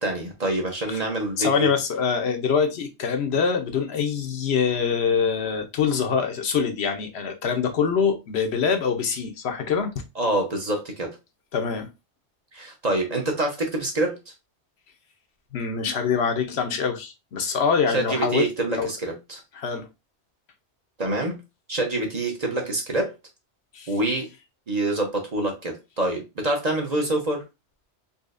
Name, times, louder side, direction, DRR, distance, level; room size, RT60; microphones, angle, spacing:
voice 1, 0.0-1.7 10.2-11.2 12.5-14.2 17.9-19.4 21.0-21.4 21.7-23.1 23.9-24.3 24.7-27.4, right 2 dB, 40° right, 0.8 m, -26 dB
voice 2, 1.4-10.0 11.5-11.9 15.5-18.9 19.5-19.9 23.7-23.9, left 6 dB, 70° left, 0.9 m, -24 dB
4.0 x 2.7 x 2.5 m
omnidirectional pair, 1.2 m